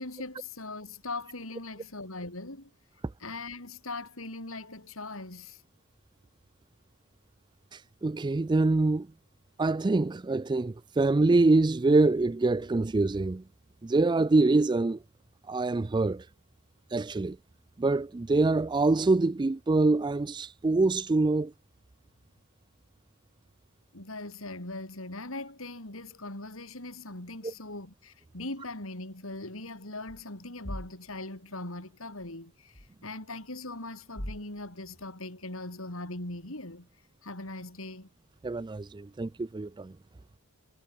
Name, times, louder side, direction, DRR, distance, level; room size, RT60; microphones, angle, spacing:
voice 1, 0.0-2.7 3.2-5.6 23.9-36.9 37.2-38.1, left 2 dB, 70° left, 5.0 m, -40 dB
voice 2, 8.0-9.1 9.6-13.4 13.8-15.0 15.5-16.2 16.9-17.4 17.8-21.5 27.4-27.5 38.4-39.9, right 3 dB, 20° right, 0.4 m, -25 dB
sound 1, 30.1-30.2 30.6-31.2 32.2-32.3 32.7-32.9 34.2-35.0, equal, 25° left, 5.5 m, -39 dB
head